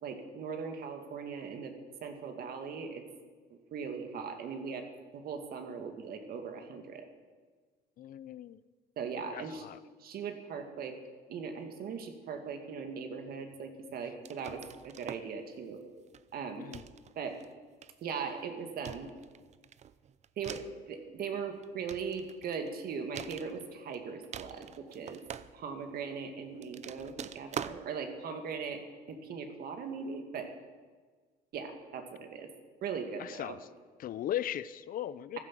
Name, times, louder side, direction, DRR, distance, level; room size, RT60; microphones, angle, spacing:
voice 1, 0.0-1.7 2.0-3.0 3.5-4.9 5.1-7.1 9.0-9.7 10.0-10.9 11.3-15.8 16.3-16.7 17.2-17.4 18.0-19.1 20.4-25.2 25.5-28.8 29.1-30.5 31.5-32.5 32.8-33.6, right 6 dB, 65° right, 5 dB, 2.2 m, -39 dB
voice 2, 8.0-8.6 9.3-9.8 16.6-16.8 33.2-33.6 34.0-35.4, left 11 dB, 55° left, 17 dB, 0.6 m, -37 dB
sound 1, 14.3-15.3 16.1-16.3 16.7-17.4 17.8-18.3 18.8-20.8 21.5-22.7 23.2-24.0 24.2-25.9 26.5-27.8, right 8 dB, 40° right, 0.6 m, -45 dB
15.0 x 12.0 x 7.5 m, 1.5 s
cardioid pair, 110°, 17 cm